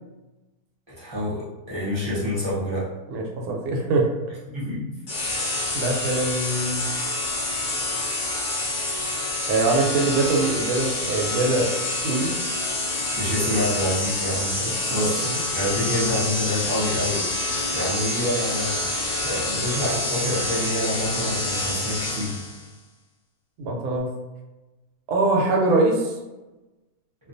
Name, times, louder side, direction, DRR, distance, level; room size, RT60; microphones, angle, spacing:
voice 1, 0.9-2.9 4.5-4.9 13.2-15.2 15.5-17.3 17.7-18.9 19.2-22.4, left 1 dB, 35° right, -10 dB, 0.4 m, -27 dB
voice 2, 3.1-4.1 5.7-6.9 9.5-11.7 12.0-12.4 14.6-15.1 23.6-24.1 25.1-26.1, right 2 dB, 85° right, 0 dB, 1.1 m, -23 dB
sound 1, 5.1-22.6, left 2 dB, 90° left, 0.4 m, -27 dB
2.4 x 2.3 x 2.5 m, 1.1 s
omnidirectional pair, 1.6 m